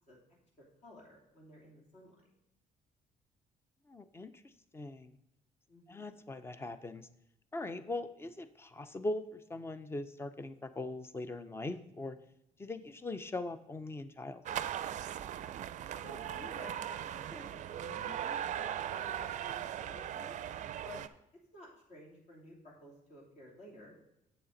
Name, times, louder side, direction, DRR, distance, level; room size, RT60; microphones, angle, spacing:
voice 1, 0.6-2.2 5.7-6.0 16.0-20.4 20.8-21.0 21.5-23.9, left 1 dB, 50° left, -2 dB, 2.9 m, -53 dB
voice 2, 3.9-5.2 5.9-7.1 7.5-12.2 12.6-14.7, left 2 dB, 15° left, 12 dB, 0.5 m, -41 dB
sound 1, 14.5-21.1, right 10 dB, 55° right, 0.4 m, -39 dB
7.7 x 6.9 x 3.9 m, 0.84 s
cardioid pair, 125°, 15 cm